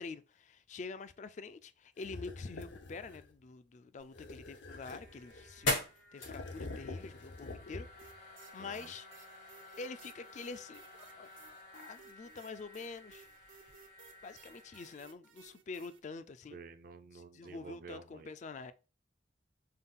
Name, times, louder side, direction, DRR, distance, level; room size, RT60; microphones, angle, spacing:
voice 1, 0.0-5.8 6.1-7.9 8.5-9.1 9.8-10.8 11.2-11.3 11.7-13.3 14.2-16.6 17.1-18.7, left 4 dB, 40° left, 0.3 m, -46 dB
sound 1, 2.0-3.3 4.1-5.7 6.2-8.1, left 3 dB, 70° left, 0.7 m, -47 dB
sound 2, 4.0-14.9, left 2 dB, 90° left, 2.1 m, -44 dB
sound 3, 8.0-16.0, right 7 dB, 85° right, 0.8 m, -59 dB
voice 2, 8.6-8.9 16.5-18.3, right 4 dB, 50° right, 0.5 m, -50 dB
5.5 x 2.3 x 3.6 m
head